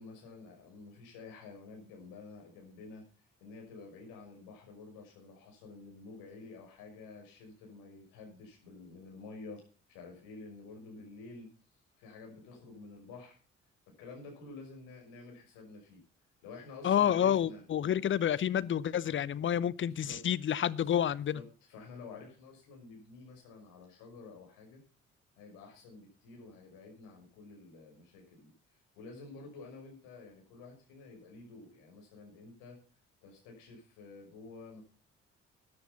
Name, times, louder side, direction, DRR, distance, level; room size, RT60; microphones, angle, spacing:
voice 1, 0.0-9.6 9.9-11.5 12.0-13.4 13.9-16.0 16.4-17.6 19.9-20.2 21.3-24.8 25.4-32.8 33.2-34.8, left 3 dB, 65° left, 5.8 m, -50 dB
voice 2, 16.8-21.4, left 9 dB, 35° left, 0.8 m, -29 dB
14.0 x 9.7 x 5.7 m
figure-of-eight pair, 45°, 37 cm